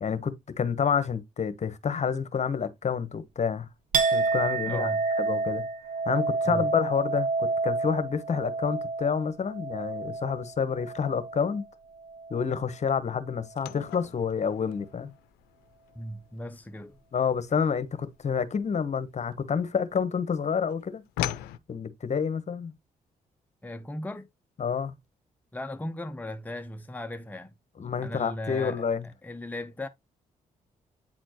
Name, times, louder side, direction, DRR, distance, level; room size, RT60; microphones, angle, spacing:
voice 1, 0.0-3.7 4.1-5.6 6.0-11.6 12.3-15.1 17.1-21.0 21.7-22.7 24.6-24.9 27.8-29.1, left 6 dB, 50° left, 1.1 m, -29 dB
Chink clink, 3.9-11.6 12.0-12.6, right 4 dB, 60° right, 1.4 m, -29 dB
voice 2, 4.6-5.0 6.4-6.7 16.0-17.0 23.6-24.3 25.5-27.5 28.0-29.9, left 1 dB, 10° left, 0.8 m, -37 dB
sound 1, 13.6-20.0 20.3-21.6, left 13 dB, 90° left, 0.5 m, -39 dB
8.9 x 4.3 x 3.0 m
supercardioid pair, 55°, 15 cm